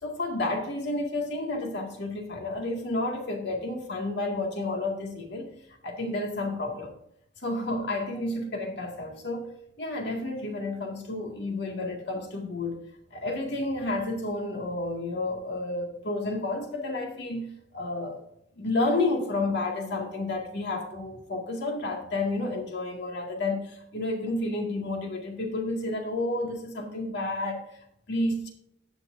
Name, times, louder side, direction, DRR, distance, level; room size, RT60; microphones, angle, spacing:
voice 1, 0.0-5.5 5.8-6.9 7.4-12.8 13.1-17.5 17.7-18.2 18.6-27.6 28.1-28.5, left 2 dB, 65° left, 2 dB, 2.0 m, -31 dB
18.0 x 6.2 x 2.6 m, 0.74 s
head